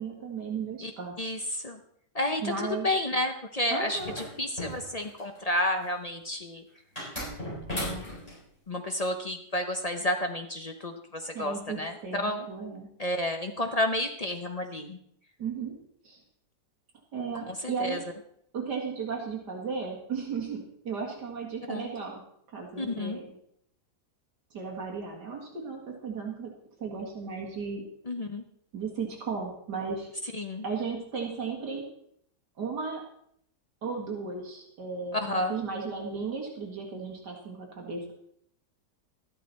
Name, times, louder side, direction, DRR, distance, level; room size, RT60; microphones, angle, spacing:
voice 1, 0.0-1.1 2.4-2.9 3.7-4.1 11.3-12.9 15.4-15.7 16.0-16.2 17.1-18.0 18.5-22.2 22.5-23.3 24.5-26.5 26.8-27.9 28.7-30.1 30.6-31.8 32.6-33.0 33.8-38.1, right 5 dB, 75° right, 0 dB, 2.7 m, -35 dB
voice 2, 1.2-1.8 2.1-6.6 7.7-8.1 8.7-12.5 13.0-15.0 17.5-18.0 21.7-21.9 22.8-23.2 28.1-28.4 30.3-30.7 35.1-35.6, left 1 dB, 40° left, 5 dB, 0.5 m, -31 dB
sound 1, 3.9-5.4 7.0-8.4, equal, 20° left, 6.4 m, -36 dB
13.0 x 11.0 x 4.1 m, 0.69 s
omnidirectional pair, 1.8 m